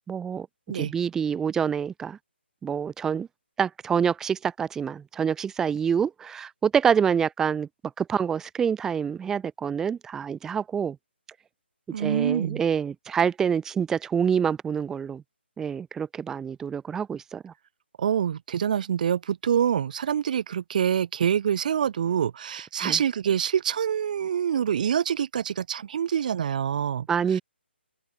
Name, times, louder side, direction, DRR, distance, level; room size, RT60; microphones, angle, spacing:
voice 1, 0.1-0.5 0.7-2.2 2.6-3.3 3.6-7.7 8.0-11.0 12.0-15.2 15.6-17.5 22.8-23.0 27.1-27.4, right 7 dB, 10° right, 1.3 m, -26 dB
voice 2, 11.9-12.6 18.0-27.4, right 8 dB, 40° right, 1.8 m, -26 dB
open air
figure-of-eight pair, 140°, 6 cm